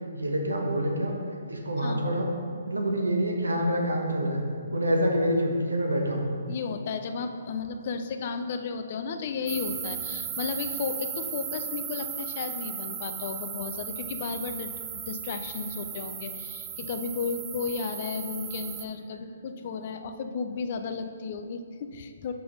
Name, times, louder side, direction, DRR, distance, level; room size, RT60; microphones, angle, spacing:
voice 1, 0.1-1.2 1.5-2.3 2.7-4.4 4.7-6.3, equal, 85° right, 1 dB, 1.1 m, -26 dB
voice 2, 1.8-2.1 6.5-22.3, left 5 dB, 45° left, 7 dB, 0.5 m, -34 dB
sound 1, 9.5-18.8, right 8 dB, 20° right, 0.5 m, -36 dB
5.8 x 5.4 x 3.9 m, 2.2 s
figure-of-eight pair, 135°, 0 cm